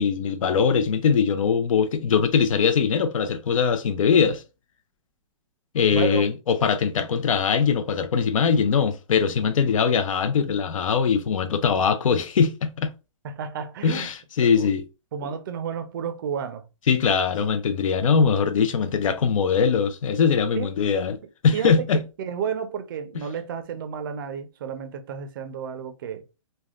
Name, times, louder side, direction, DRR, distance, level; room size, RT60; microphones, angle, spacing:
voice 1, 0.0-4.4 5.7-12.9 13.8-14.8 16.9-21.2 21.4-22.0, left 6 dB, 90° left, 0.5 m, -21 dB
voice 2, 5.9-6.2 13.2-14.1 14.4-14.7 15.1-16.7 20.5-20.7 21.5-26.2, right 7 dB, 40° right, 0.4 m, -31 dB
3.4 x 2.1 x 2.3 m
hypercardioid pair, 165°, 16 cm